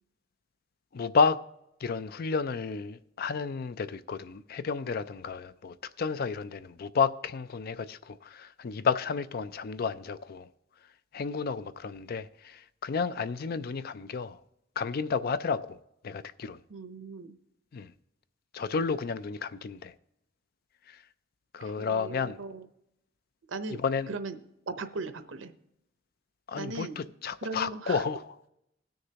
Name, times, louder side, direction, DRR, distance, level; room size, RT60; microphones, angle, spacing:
voice 1, 0.9-1.4 1.8-10.5 11.1-14.4 14.8-15.8 16.0-16.6 17.7-17.9 18.5-19.9 20.9-21.0 21.5-22.4 23.8-24.1 26.5-28.2, left 5 dB, 50° left, 0.4 m, -31 dB
voice 2, 16.7-17.4 21.6-22.7 23.5-24.4 24.7-25.5 26.5-27.0 27.4-28.0, right 3 dB, 85° right, 0.8 m, -38 dB
19.0 x 6.5 x 2.9 m
head